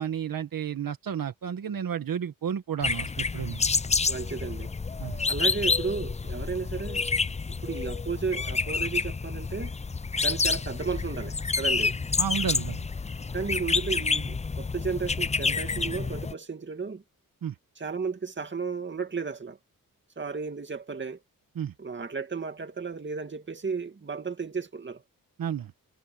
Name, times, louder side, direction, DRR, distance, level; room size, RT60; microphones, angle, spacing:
voice 1, 0.0-3.6 5.0-5.2 12.2-12.8 17.4-17.5 21.5-21.7 25.4-25.7, right 8 dB, 75° right, 1.8 m, -32 dB
sound 1, 2.8-16.3, left 4 dB, 20° left, 0.5 m, -29 dB
voice 2, 4.1-4.7 5.3-7.1 7.6-9.7 10.2-11.9 13.3-17.0 17.8-19.6 20.2-21.2 21.8-25.0, right 5 dB, 35° right, 2.4 m, -33 dB
wide cardioid pair, 115°, 35 cm